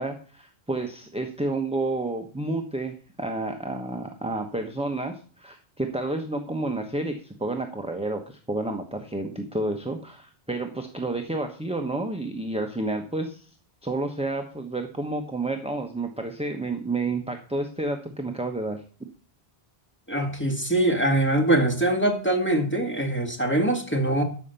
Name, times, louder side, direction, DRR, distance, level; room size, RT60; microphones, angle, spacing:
voice 1, 0.0-13.5 13.8-18.8, right 2 dB, 5° right, 4 dB, 1.0 m, -30 dB
voice 2, 20.1-24.2, right 1 dB, 10° left, 3 dB, 2.0 m, -23 dB
13.0 x 5.8 x 6.9 m, 0.42 s
omnidirectional pair, 1.1 m